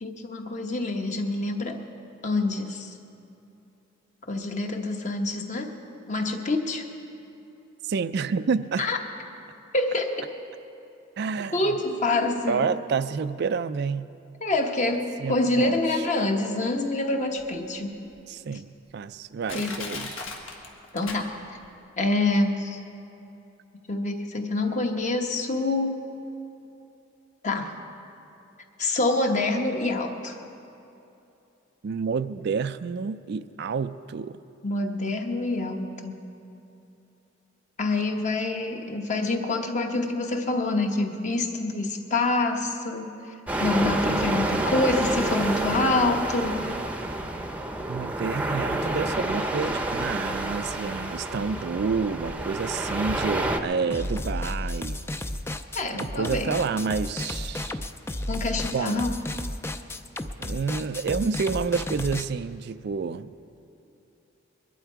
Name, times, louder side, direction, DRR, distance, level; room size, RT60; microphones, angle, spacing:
voice 1, 0.0-1.8 2.2-2.9 4.3-5.7 6.1-6.9 8.8-9.0 9.7-10.3 11.5-12.7 14.4-17.9 19.5-19.9 20.9-21.6 22.0-22.8 23.9-26.0 27.4-27.7 28.8-30.3 34.6-36.2 37.8-43.1 43.6-46.6 55.7-56.5 58.3-59.1, left 2 dB, 35° left, 1.1 m, -26 dB
voice 2, 7.8-8.9 11.2-11.6 12.5-14.1 15.2-16.0 18.3-20.3 31.8-34.4 47.9-55.0 55.9-57.8 58.7-59.0 60.4-63.3, right 5 dB, 55° right, 0.4 m, -29 dB
Crushing, 17.4-17.5 18.1-18.2 18.9-19.0 19.5-21.7 22.0-22.1, left 4 dB, 75° left, 1.6 m, -37 dB
sound 1, 43.5-53.6, right 1 dB, 5° right, 0.7 m, -28 dB
sound 2, 53.9-62.3, left 1 dB, 10° left, 0.4 m, -33 dB
21.5 x 11.5 x 4.6 m
head